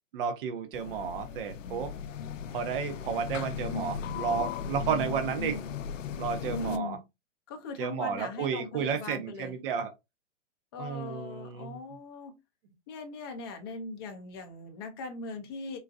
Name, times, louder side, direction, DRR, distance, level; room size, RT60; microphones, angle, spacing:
voice 1, 0.1-1.9 2.5-5.6 6.2-7.0 7.8-9.9 10.8-11.8, right 7 dB, 45° right, 0.7 m, -32 dB
sound 1, 0.7-6.8, left 7 dB, 80° left, 0.5 m, -37 dB
voice 2, 6.4-7.0 7.5-9.6 10.7-12.4 12.9-15.8, left 3 dB, 20° left, 0.5 m, -39 dB
3.9 x 2.2 x 2.5 m
hypercardioid pair, 150°, 38 cm